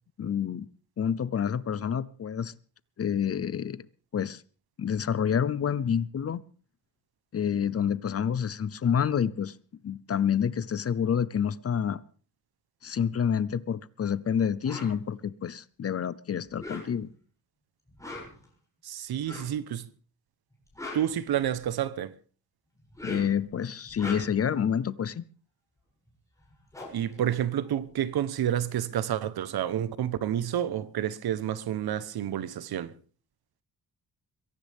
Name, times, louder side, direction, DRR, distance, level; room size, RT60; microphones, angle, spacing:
voice 1, 0.2-0.7 1.0-2.5 3.0-3.8 4.1-4.4 4.8-6.4 7.3-9.5 9.8-12.0 12.8-17.1 23.0-25.2, left 8 dB, 40° left, 0.7 m, -28 dB
sound 1, 14.7-14.9 16.5-17.2 17.9-18.5 19.2-19.6 20.5-21.8 22.8-23.4 23.8-24.5 26.1-26.2 26.4-28.1, left 2 dB, 10° left, 7.2 m, -41 dB
voice 2, 18.8-19.9 20.9-22.2 26.9-32.9, right 10 dB, 85° right, 1.2 m, -29 dB
23.0 x 16.5 x 3.6 m
wide cardioid pair, 155°, 37 cm